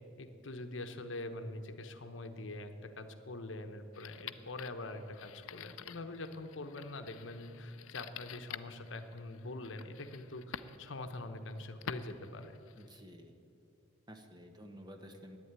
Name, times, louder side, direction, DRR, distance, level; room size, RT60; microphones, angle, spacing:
voice 1, 0.2-12.6, left 2 dB, 65° left, 8 dB, 0.9 m, -44 dB
sound 1, 3.9-13.0, left 8 dB, 85° left, 0.5 m, -49 dB
voice 2, 12.8-13.3 14.1-15.4, equal, 20° right, 5 dB, 1.1 m, -52 dB
11.0 x 9.2 x 9.6 m, 2.6 s
head